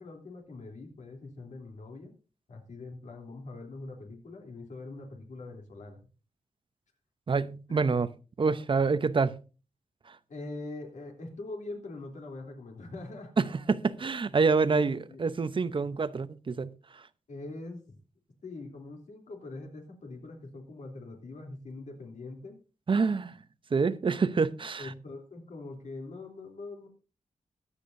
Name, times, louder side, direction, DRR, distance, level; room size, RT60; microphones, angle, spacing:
voice 1, 0.0-2.1 2.5-6.0 7.7-8.0 10.3-13.3 14.7-15.2 15.8-16.0 17.3-17.9 18.4-22.6 24.8-26.9, left 2 dB, 70° left, 3.2 m, -43 dB
voice 2, 7.3-8.1 8.4-9.4 10.1-10.2 13.4-17.0 22.9-23.4 23.7-24.9, right 4 dB, 40° right, 0.8 m, -27 dB
22.5 x 8.3 x 2.7 m
wide cardioid pair, 105°, 13 cm